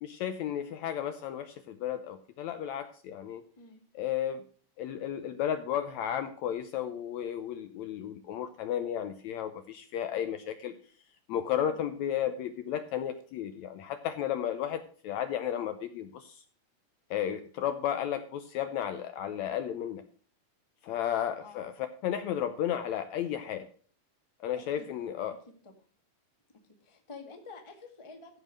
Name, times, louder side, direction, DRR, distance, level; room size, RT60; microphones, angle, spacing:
voice 1, 0.0-3.4 4.0-4.4 4.8-10.7 11.3-16.4 17.1-20.0 20.8-23.7 24.4-25.4, left 10 dB, 75° left, 9 dB, 1.7 m, -33 dB
voice 2, 24.6-24.9 25.6-25.7 26.8-28.4, left 4 dB, 15° left, 3 dB, 0.9 m, -49 dB
14.5 x 5.2 x 6.3 m, 0.44 s
omnidirectional pair, 3.7 m